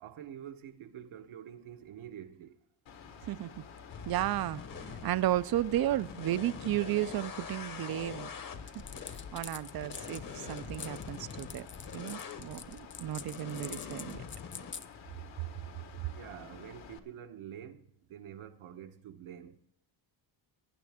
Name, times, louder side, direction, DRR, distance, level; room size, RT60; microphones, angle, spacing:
voice 1, 0.0-2.6 8.8-9.1 9.6-9.7 16.0-19.6, right 10 dB, 80° right, 1.3 m, -47 dB
Mechanical fan, 2.9-17.0, left 6 dB, 65° left, 1.6 m, -51 dB
voice 2, 3.2-3.7 4.1-4.6 5.0-8.3 8.7-8.8 9.3-11.7 11.9-14.2, right 14 dB, 50° right, 0.5 m, -33 dB
sound 1, 3.9-14.7, left 6 dB, 40° left, 1.1 m, -44 dB
sound 2, 8.7-14.9, left 7 dB, 25° left, 0.4 m, -45 dB
19.0 x 9.4 x 3.5 m
cardioid pair, 155°, 48 cm